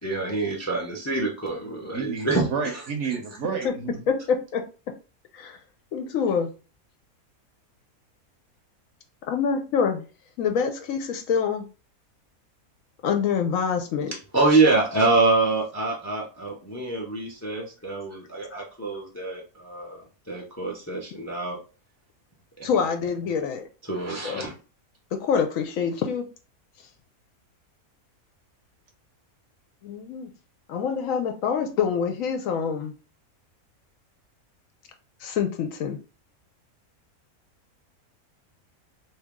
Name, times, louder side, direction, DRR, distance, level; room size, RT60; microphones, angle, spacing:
voice 1, 0.0-2.8 14.3-21.6 22.6-22.7 23.9-24.5, right 3 dB, 20° left, -1 dB, 0.4 m, -25 dB
voice 2, 1.9-4.0, right 5 dB, 60° right, 4 dB, 0.9 m, -30 dB
voice 3, 4.1-4.6 5.3-5.6 5.9-6.5 9.3-10.1 10.4-11.7 13.0-14.1 22.6-23.6 24.2-24.5 25.1-26.2 29.8-30.3 30.7-32.9 35.2-36.0, left 6 dB, 70° left, 5 dB, 0.9 m, -26 dB
3.0 x 2.7 x 3.5 m, 0.34 s
omnidirectional pair, 1.5 m